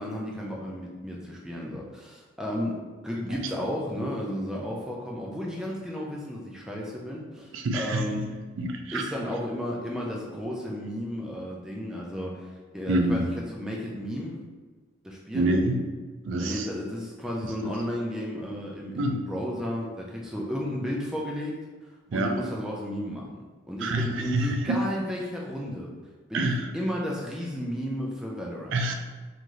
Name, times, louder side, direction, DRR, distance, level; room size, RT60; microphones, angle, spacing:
voice 1, 0.0-2.8 3.0-8.3 8.9-12.5 12.7-14.4 15.0-15.5 16.4-21.6 22.1-25.9 26.3-28.8, equal, 5° right, -3 dB, 0.4 m, -33 dB
voice 2, 7.5-8.2 8.6-9.0 12.9-13.3 15.3-15.8 16.3-16.7 17.6-17.7 19.0-19.2 22.1-22.4 23.8-24.8 26.3-26.7 28.7-28.9, right 1 dB, 85° right, 4 dB, 0.4 m, -26 dB
2.6 x 2.4 x 3.0 m, 1.3 s
head